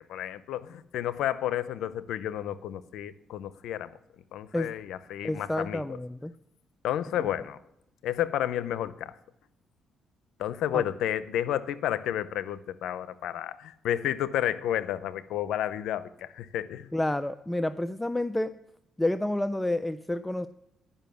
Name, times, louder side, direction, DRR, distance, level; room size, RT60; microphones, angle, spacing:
voice 1, 0.1-4.0 4.3-6.0 6.8-7.6 8.0-9.1 10.4-16.9, left 11 dB, 85° left, 15 dB, 0.6 m, -31 dB
voice 2, 5.2-6.3 7.2-7.3 10.7-10.9 16.9-18.6 19.0-20.5, left 1 dB, 10° left, 12 dB, 0.3 m, -29 dB
11.5 x 5.5 x 6.9 m, 0.84 s
cardioid pair, 90°, 0 cm